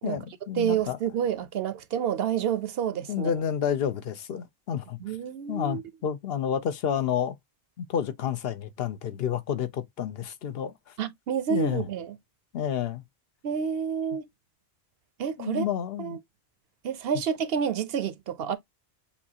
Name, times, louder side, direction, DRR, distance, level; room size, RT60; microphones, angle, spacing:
voice 1, 0.0-1.0 3.1-5.0 5.5-7.4 7.8-10.9 11.5-11.9 12.5-13.0 15.4-16.2, left 8 dB, 65° left, 0.8 m, -30 dB
voice 2, 0.6-3.3 5.0-5.8 11.0-12.1 13.4-14.3 15.2-15.7 16.0-16.2 16.8-18.6, right 8 dB, 65° right, 0.8 m, -29 dB
7.1 x 2.4 x 2.7 m
omnidirectional pair, 1.1 m